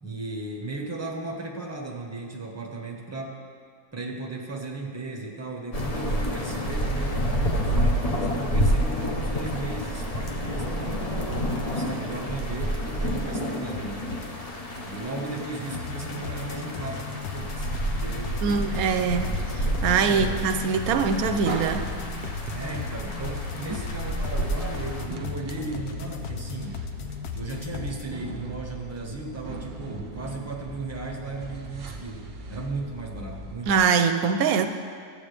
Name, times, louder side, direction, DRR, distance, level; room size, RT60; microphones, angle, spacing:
voice 1, 0.0-3.4 3.9-11.1 11.6-14.1 14.8-18.7 20.1-20.4 22.5-26.8 27.3-33.8, right 3 dB, 10° right, 0 dB, 0.9 m, -36 dB
sound 1, 5.7-25.0, equal, 30° left, 0.7 m, -29 dB
sound 2, 15.6-28.0, left 8 dB, 80° left, 1.2 m, -37 dB
voice 2, 18.4-21.9 23.7-23.8 33.7-34.7, right 5 dB, 70° right, 8 dB, 1.0 m, -23 dB
sound 3, 21.4-33.8, right 3 dB, 55° right, 0.5 m, -38 dB
13.5 x 8.4 x 3.4 m, 2.2 s
omnidirectional pair, 1.7 m